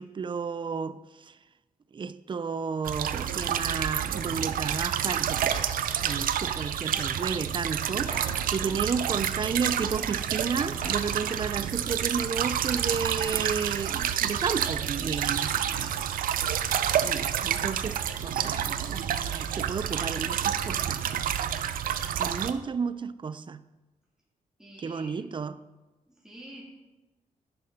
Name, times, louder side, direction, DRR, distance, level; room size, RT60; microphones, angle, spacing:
voice 1, 0.0-1.4 1.9-5.6 6.0-8.1 8.5-15.5 17.0-21.0 22.2-23.6 24.8-25.6, right 5 dB, 35° right, 0.5 m, -32 dB
sound 1, 2.8-22.5, right 9 dB, 90° right, 0.6 m, -29 dB
sound 2, 5.5-6.6 8.1-9.2 10.8-11.9, right 3 dB, 70° right, 2.0 m, -43 dB
voice 2, 15.4-16.1 24.6-25.3 26.1-26.6, equal, 5° right, 3.3 m, -48 dB
11.0 x 6.7 x 5.2 m
cardioid pair, 100°, 14 cm